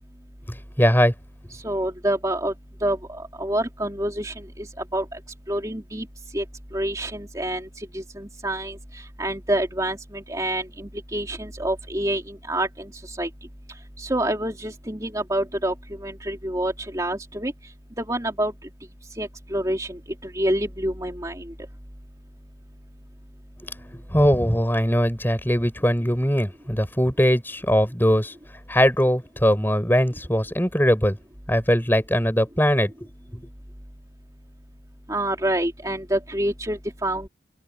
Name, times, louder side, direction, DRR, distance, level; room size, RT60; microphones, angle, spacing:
voice 1, 0.8-1.1 23.9-28.3 28.7-31.2 31.5-32.9, equal, 10° left, 5.8 m, -20 dB
voice 2, 1.6-2.5 2.8-3.0 3.4-4.3 4.9-5.0 5.5-6.0 6.3-6.4 6.7-8.8 9.2-12.7 13.2-13.3 14.0-15.7 16.0-17.5 18.0-18.5 19.2-20.0 20.3-21.4 35.1-37.3, right 1 dB, 20° right, 3.2 m, -27 dB
head